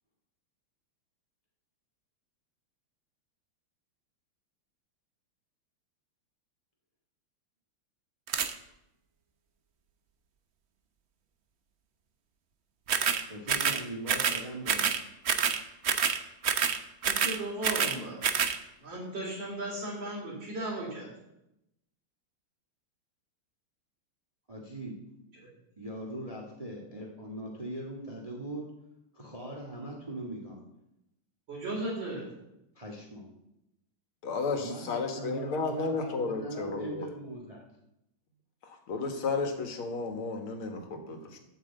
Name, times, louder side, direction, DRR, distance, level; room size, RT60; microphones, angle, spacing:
sound 1, 8.3-8.5 12.9-13.2 13.5-13.8 14.1-14.4 14.7-15.0 15.2-15.6 15.8-16.2 16.4-16.8 17.0-18.0 18.2-18.6, right 7 dB, 85° right, 0.5 m, -27 dB
voice 1, 13.3-14.8 24.5-24.9 25.8-28.7 29.1-30.6 32.8-33.3 34.6-37.6, right 1 dB, 15° right, 0 dB, 1.8 m, -40 dB
voice 2, 17.0-18.2 18.8-21.1 25.3-25.5 31.5-32.3, right 1 dB, 55° right, -6 dB, 4.0 m, -36 dB
voice 3, 34.2-37.1 38.6-41.4, left 4 dB, 75° left, 5 dB, 2.4 m, -33 dB
13.0 x 6.4 x 7.9 m, 0.87 s
omnidirectional pair, 2.3 m